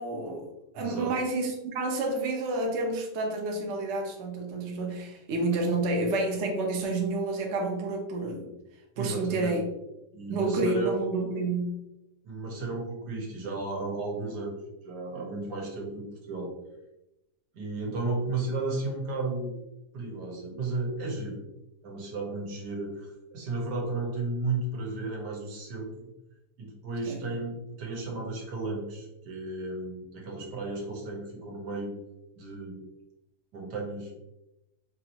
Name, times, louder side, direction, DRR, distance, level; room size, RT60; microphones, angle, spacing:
voice 1, 0.0-8.5 9.0-9.6 10.3-11.8 27.1-27.2, right 2 dB, 55° right, 1 dB, 0.8 m, -29 dB
voice 2, 0.8-1.1 9.0-9.6 10.1-10.9 12.2-14.6 14.8-16.6 17.5-19.6 19.9-21.4 21.8-25.9 26.6-31.9 32.4-32.8 33.5-34.1, right 3 dB, 80° right, 0 dB, 1.6 m, -34 dB
4.7 x 2.6 x 2.9 m, 0.91 s
omnidirectional pair, 1.8 m